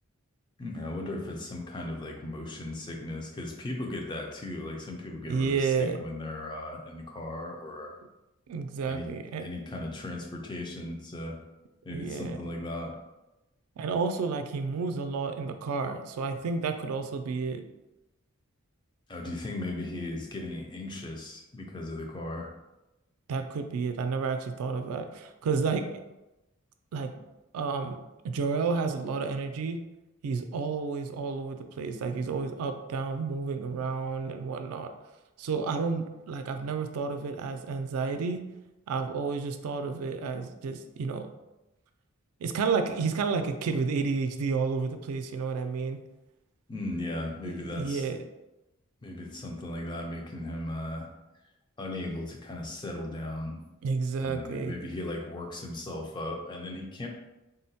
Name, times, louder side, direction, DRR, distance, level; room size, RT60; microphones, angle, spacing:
voice 1, 0.6-8.0 8.9-9.1 9.4-11.4 11.8-12.9 19.1-22.5 46.7-48.1 49.0-51.1 51.8-53.6 54.2-57.1, left 1 dB, 20° left, 1 dB, 0.4 m, -37 dB
voice 2, 5.3-6.0 8.5-9.5 11.9-12.4 13.8-17.6 23.3-26.0 26.9-27.1 27.5-28.0 28.2-29.8 30.2-34.9 35.4-38.4 38.9-41.3 42.4-46.0 47.4-48.2 53.8-54.9, right 4 dB, 90° right, 7 dB, 0.3 m, -31 dB
3.7 x 2.1 x 2.7 m, 0.98 s
head